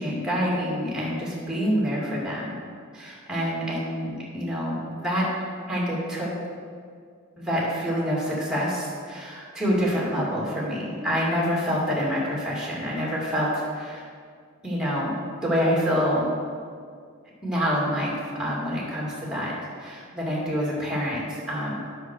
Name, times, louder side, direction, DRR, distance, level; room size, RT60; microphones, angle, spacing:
voice 1, 0.0-2.6 2.9-5.3 5.7-6.3 7.4-14.0 14.6-16.3 17.4-21.8, equal, 5° right, -5 dB, 2.5 m, -27 dB
8.1 x 6.6 x 6.3 m, 2.1 s
head